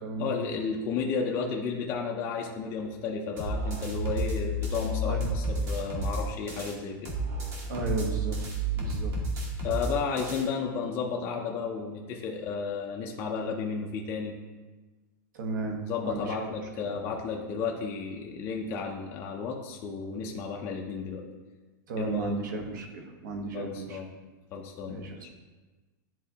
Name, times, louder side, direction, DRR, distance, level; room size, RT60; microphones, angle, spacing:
voice 1, 0.2-7.1 9.6-14.3 15.9-21.2 22.0-22.3 23.5-24.1 24.5-25.3, left 5 dB, 20° left, 0 dB, 0.4 m, -33 dB
sound 1, 3.4-6.7 7.1-10.4, right 1 dB, 25° right, 1.0 m, -31 dB
voice 2, 7.7-8.4 8.8-9.1 15.3-16.5 21.9-24.0 24.9-25.3, right 3 dB, 65° right, 3 dB, 1.1 m, -34 dB
10.0 x 3.6 x 2.8 m, 1.3 s
supercardioid pair, 175°, 11 cm